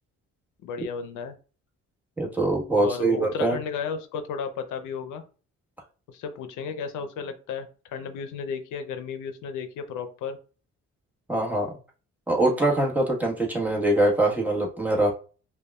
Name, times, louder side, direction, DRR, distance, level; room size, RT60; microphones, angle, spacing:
voice 1, 0.6-1.3 2.8-5.2 6.1-10.4, left 6 dB, 85° left, 8 dB, 0.6 m, -34 dB
voice 2, 2.2-3.6 11.3-11.7 12.3-15.1, right 2 dB, 5° right, -2 dB, 1.2 m, -23 dB
5.2 x 2.3 x 2.3 m, 0.36 s
cardioid pair, 90°, 30 cm